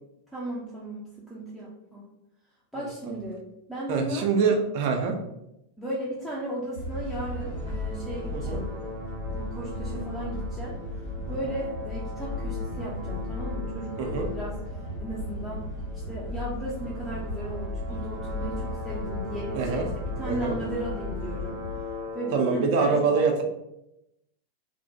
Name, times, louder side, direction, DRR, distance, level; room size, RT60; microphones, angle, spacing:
voice 1, 0.3-2.1 2.7-3.4 3.7-4.3 5.8-8.7 9.3-10.7 11.3-19.8 20.1-21.6 22.1-23.3, right 1 dB, 5° left, -7 dB, 0.5 m, -36 dB
voice 2, 3.9-5.1 8.3-8.6 14.0-14.3 19.6-19.9 20.3-20.6 22.3-23.4, right 5 dB, 50° right, 3 dB, 0.4 m, -25 dB
sound 1, 6.0-22.7, left 2 dB, 65° left, 0.9 m, -40 dB
sound 2, 6.7-21.8, left 1 dB, 85° left, 1.2 m, -35 dB
2.4 x 2.1 x 2.8 m, 0.85 s
figure-of-eight pair, 90°, 0 cm